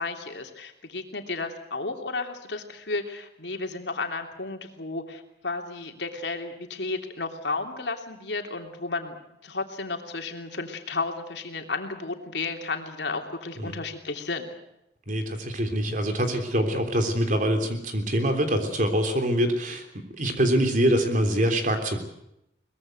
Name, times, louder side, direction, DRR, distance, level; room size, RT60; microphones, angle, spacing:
voice 1, 0.0-9.2 9.4-14.5, left 3 dB, 80° left, 4 dB, 3.1 m, -33 dB
voice 2, 15.1-19.8 20.1-22.0, equal, 45° right, 6 dB, 3.3 m, -24 dB
23.0 x 21.0 x 8.0 m, 0.82 s
head